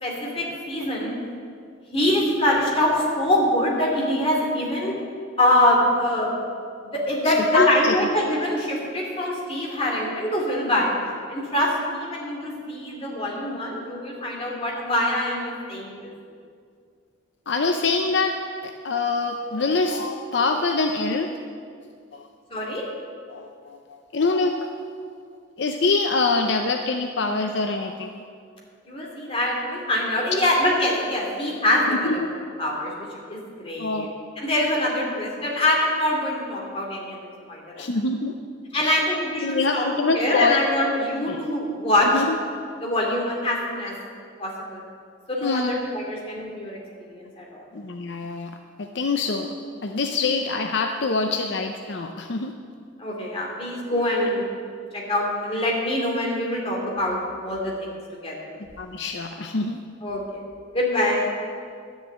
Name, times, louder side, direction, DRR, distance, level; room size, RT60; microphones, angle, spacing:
voice 1, 0.0-1.1 1.9-4.9 5.4-6.3 6.8-16.1 22.5-22.8 28.9-32.2 32.6-34.1 34.4-37.2 37.5-37.9 38.7-39.9 40.1-42.2 42.8-43.9 44.4-44.8 45.3-47.6 53.0-54.4 54.9-58.0 58.2-58.5 60.0-60.4 60.7-61.3, left 1 dB, 30° left, -2 dB, 2.6 m, -24 dB
voice 2, 7.2-7.9 17.5-18.3 18.6-21.3 22.1-22.3 23.3-23.8 24.1-24.7 25.6-28.2 31.9-32.1 33.8-34.1 37.8-38.3 38.8-39.0 39.4-40.6 41.3-41.4 42.1-42.4 45.4-45.7 47.7-48.5 48.8-49.5 49.8-52.5 58.8-59.8, left 3 dB, 65° left, 4 dB, 0.6 m, -25 dB
11.0 x 7.3 x 8.6 m, 2.2 s
head